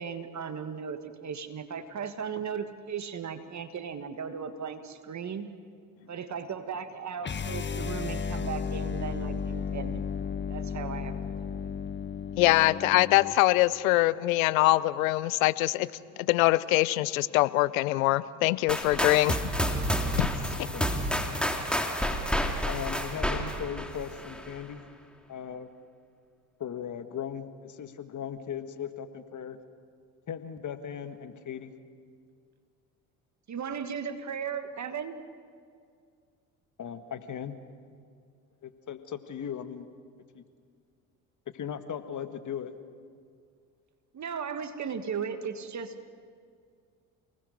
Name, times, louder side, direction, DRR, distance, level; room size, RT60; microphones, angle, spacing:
voice 1, 0.0-5.5 6.1-10.1 10.5-11.2 11.4-11.7 33.5-35.2 44.1-46.0, right 6 dB, 45° right, 9 dB, 1.8 m, -36 dB
sound 1, 7.2-13.4, left 6 dB, 30° left, 1.1 m, -34 dB
voice 2, 12.4-15.9 16.2-19.4 20.2-20.7, left 18 dB, 85° left, 18 dB, 0.7 m, -24 dB
sound 2, 18.7-24.5, equal, ahead, 3.1 m, -29 dB
voice 3, 22.7-24.8 25.3-25.7 26.6-29.6 30.3-31.7 36.8-37.6 38.6-39.9 40.3-40.4 41.5-42.7, left 8 dB, 45° left, 9 dB, 1.7 m, -38 dB
29.0 x 19.5 x 6.6 m, 2.2 s
hypercardioid pair, 65°, 40 cm